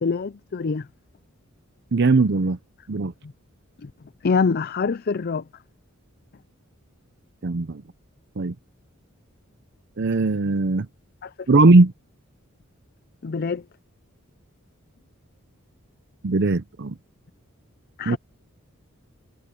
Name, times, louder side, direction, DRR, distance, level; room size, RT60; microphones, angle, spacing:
voice 1, 0.0-0.9 3.2-3.3 3.8-3.9 4.2-5.4 11.2-11.6 13.2-13.6 18.0-18.2, left 5 dB, 50° left, 0.5 m, -25 dB
voice 2, 1.9-2.6 2.9-3.1 7.4-7.8 8.4-8.5 10.0-10.9 11.5-11.9 16.2-16.9 18.1-18.2, right 3 dB, 55° right, 0.6 m, -19 dB
head